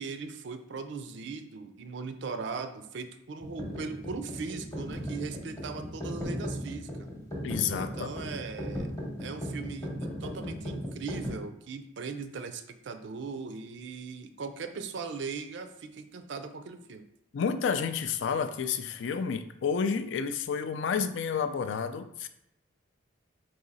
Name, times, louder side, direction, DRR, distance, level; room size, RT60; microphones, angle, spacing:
voice 1, 0.0-6.9 7.8-8.9 9.2-17.0, right 4 dB, 60° right, 9 dB, 0.4 m, -39 dB
sound 1, 3.4-11.4, equal, 15° left, 0.8 m, -37 dB
voice 2, 7.4-8.1 17.3-22.3, left 6 dB, 65° left, 10 dB, 0.3 m, -30 dB
4.0 x 2.7 x 4.0 m, 0.80 s
head